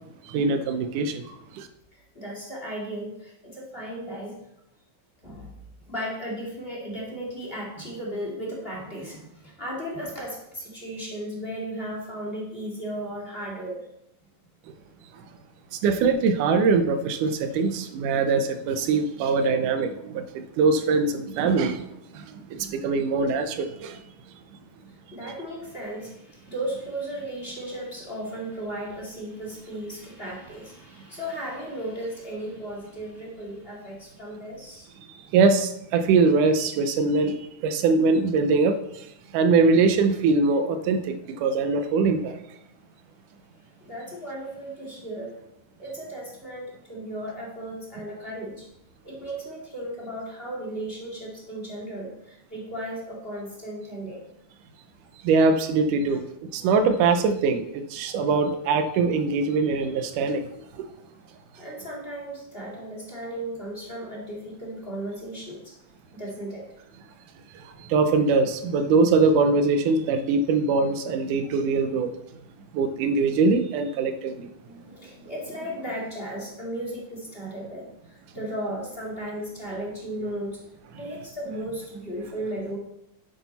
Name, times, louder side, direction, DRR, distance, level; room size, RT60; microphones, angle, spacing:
voice 1, 0.2-1.7 15.7-21.9 22.1-24.0 35.3-39.1 39.3-42.4 55.2-56.2 56.5-60.5 60.7-60.9 67.5-72.1 72.7-74.5, right 4 dB, 90° right, 8 dB, 2.4 m, -22 dB
voice 2, 1.9-4.4 5.2-5.5 5.8-13.9 24.9-34.9 43.8-45.4 45.8-48.7 49.0-54.2 56.0-56.2 61.6-65.7 66.1-66.7 74.6-80.6 81.0-82.8, right 1 dB, 20° left, -3 dB, 2.4 m, -35 dB
10.5 x 8.3 x 4.1 m, 0.80 s
omnidirectional pair, 3.5 m